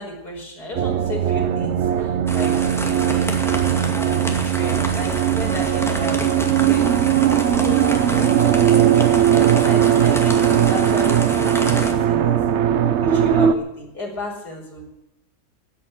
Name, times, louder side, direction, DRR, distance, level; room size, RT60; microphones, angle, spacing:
voice 1, 0.0-7.0 7.5-12.4 12.7-14.9, left 1 dB, 75° left, -1 dB, 5.6 m, -33 dB
sound 1, 0.7-13.5, right 10 dB, 55° right, 0.9 m, -19 dB
sound 2, 2.3-11.9, equal, ahead, 2.1 m, -30 dB
13.5 x 10.5 x 9.1 m, 0.89 s
omnidirectional pair, 1.7 m